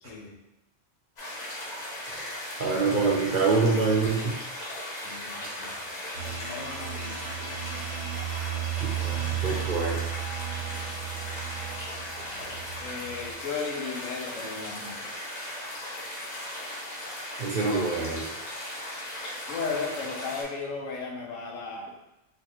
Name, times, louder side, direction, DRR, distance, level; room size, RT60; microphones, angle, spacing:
voice 1, 0.0-0.4 5.0-8.0 10.6-10.8 12.8-15.0 19.5-21.9, left 4 dB, 90° left, 0 dB, 1.1 m, -36 dB
sound 1, 1.2-20.4, left 1 dB, 40° left, 0.8 m, -37 dB
voice 2, 2.1-4.4 8.8-10.0 17.4-18.3, right 4 dB, 50° right, -3 dB, 0.7 m, -26 dB
sound 2, 6.1-13.3, right 11 dB, 90° right, 1.2 m, -34 dB
4.0 x 2.5 x 2.9 m, 0.94 s
omnidirectional pair, 1.3 m